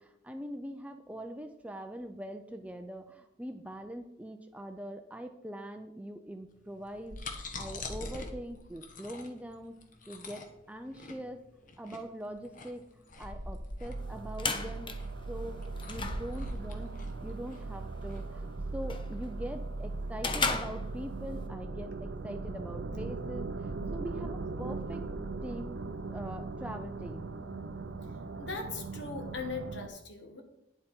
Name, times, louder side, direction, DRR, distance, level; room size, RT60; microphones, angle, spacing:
voice 1, 0.0-7.2 7.6-9.7 10.1-11.4 11.8-12.8 13.2-14.9 15.3-15.6 15.9-16.9 17.2-18.5 18.7-25.1 25.4-25.8 26.1-27.3, equal, 5° right, 6 dB, 0.5 m, -42 dB
sound 1, 6.8-18.2, left 2 dB, 45° left, 1.3 m, -43 dB
sound 2, 13.8-29.9, right 3 dB, 65° right, 0.6 m, -39 dB
sound 3, 14.0-21.5, left 4 dB, 25° left, 0.9 m, -38 dB
voice 2, 28.4-30.4, left 4 dB, 65° left, 4 dB, 1.8 m, -39 dB
10.0 x 7.8 x 4.4 m, 0.80 s
head